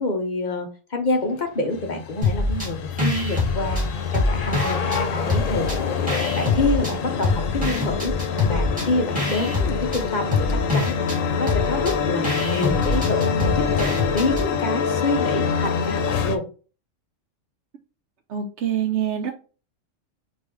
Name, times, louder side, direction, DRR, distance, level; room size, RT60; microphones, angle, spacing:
voice 1, 0.0-3.8 4.1-4.8 5.1-5.7 6.4-8.2 8.4-11.0 11.4-16.5, left 2 dB, 40° left, 3 dB, 0.9 m, -27 dB
sound 1, 1.1-8.9, left 5 dB, 65° left, 0.4 m, -32 dB
sound 2, 1.7-16.4, left 6 dB, 85° left, 1.0 m, -26 dB
sound 3, 2.2-2.7 3.0-5.0 5.3-6.9 7.2-14.5, left 3 dB, 5° right, 1.9 m, -25 dB
voice 2, 18.3-19.3, right 9 dB, 70° right, 3 dB, 0.8 m, -25 dB
5.3 x 2.7 x 3.0 m, 0.35 s
omnidirectional pair, 1.3 m